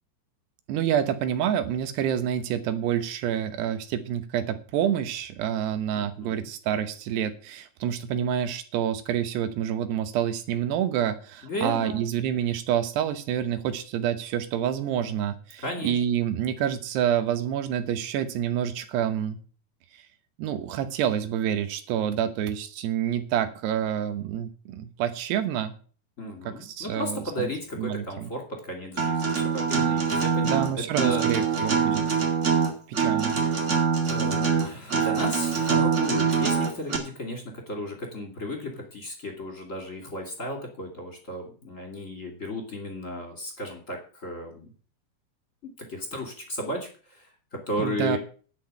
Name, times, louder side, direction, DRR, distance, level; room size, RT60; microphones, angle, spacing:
voice 1, 0.7-19.4 19.9-20.0 20.4-25.7 26.4-27.5 27.8-28.3 30.4-32.2 33.0-33.4 47.8-48.2, right 9 dB, 80° right, 10 dB, 3.1 m, -28 dB
voice 2, 5.9-6.5 11.4-12.1 15.6-16.0 26.2-31.2 34.1-44.7 45.6-48.2, equal, 25° left, 2 dB, 2.2 m, -34 dB
Acoustic guitar, 29.0-37.0, right 6 dB, 30° right, 1.3 m, -24 dB
10.5 x 5.9 x 8.9 m, 0.40 s
omnidirectional pair, 4.8 m